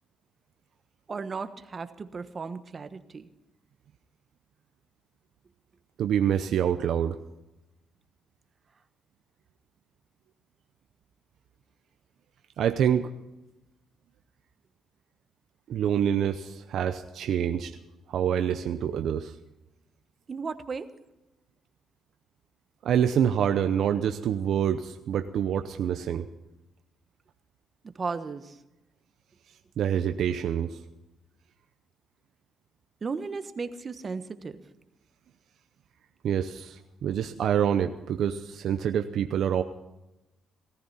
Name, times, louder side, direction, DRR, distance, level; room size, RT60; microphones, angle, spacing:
voice 1, 1.1-3.3 20.3-20.9 28.0-28.6 33.0-34.6, right 4 dB, 35° right, 10 dB, 1.2 m, -35 dB
voice 2, 6.0-7.2 12.6-13.1 15.7-17.8 18.1-19.3 22.8-26.3 29.8-30.8 36.2-39.6, right 9 dB, 70° right, 8 dB, 0.8 m, -26 dB
17.5 x 14.5 x 4.2 m, 0.96 s
cardioid pair, 90°, 0 cm